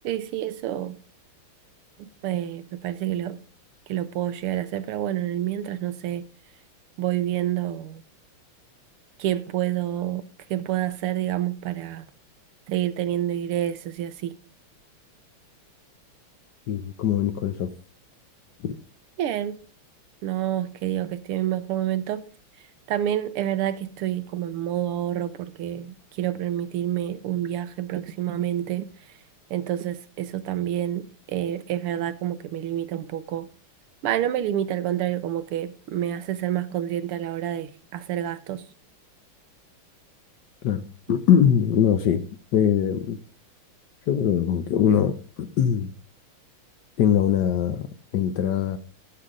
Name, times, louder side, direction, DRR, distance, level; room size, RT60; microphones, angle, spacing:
voice 1, 0.0-1.0 2.0-3.4 3.9-6.3 7.0-8.0 9.2-12.1 12.7-14.4 19.2-19.6 20.2-22.2 22.9-28.9 29.5-33.5 34.0-38.7, right 11 dB, 90° right, 1.8 m, -28 dB
voice 2, 16.7-17.7 18.6-18.7 40.6-42.2 42.5-43.2 44.1-45.9 47.0-47.9 48.1-48.8, left 9 dB, 65° left, 1.2 m, -22 dB
15.0 x 7.9 x 3.7 m
omnidirectional pair, 2.4 m